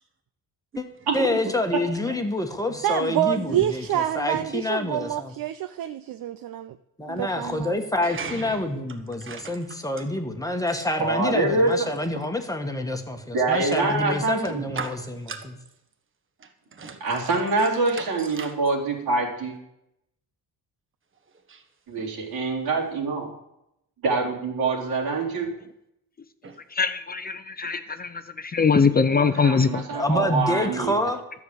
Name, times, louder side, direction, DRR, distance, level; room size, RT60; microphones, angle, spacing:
voice 1, 1.1-5.3 7.0-15.0 29.9-31.2, left 1 dB, 10° left, 1.3 m, -27 dB
voice 2, 1.7-2.0 7.1-7.2 8.0-8.8 9.1-9.8 11.9-12.0 14.7-15.5 16.4-17.0 17.6-17.7 18.0-18.5 21.5-21.6 22.0-22.1 26.4-26.6 29.9-30.0, right 5 dB, 35° right, 1.5 m, -38 dB
voice 3, 2.8-6.8 7.1-7.8, right 12 dB, 70° right, 0.7 m, -27 dB
voice 4, 11.0-11.9 13.3-14.7 17.0-19.5 21.9-23.3 24.0-25.5 29.1-30.9, right 3 dB, 85° right, 4.3 m, -25 dB
voice 5, 26.7-29.8, left 5 dB, 25° left, 0.7 m, -22 dB
13.0 x 7.2 x 8.0 m
cardioid pair, 135°, 37 cm